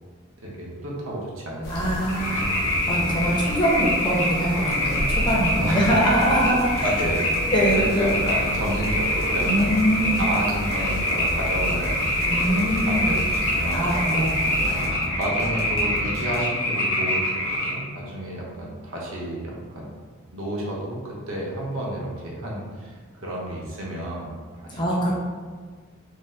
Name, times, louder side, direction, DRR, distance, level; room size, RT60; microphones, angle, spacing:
voice 1, 0.4-1.9 5.6-5.9 6.8-7.4 7.7-9.7 10.2-12.0 12.4-14.2 14.6-19.9 20.3-25.1, right 1 dB, 70° right, -3 dB, 0.7 m, -31 dB
sound 1, 1.6-14.9, equal, 90° left, 0.7 m, -33 dB
voice 2, 1.7-6.7 7.5-8.2 9.5-10.3 12.3-13.2 13.7-14.5 24.7-25.1, equal, 20° left, -5 dB, 0.5 m, -23 dB
sound 2, 2.1-17.7, left 1 dB, 60° left, 0.8 m, -25 dB
sound 3, 4.5-16.7, left 1 dB, 30° right, 0.6 m, -35 dB
2.6 x 2.3 x 3.3 m, 1.5 s
head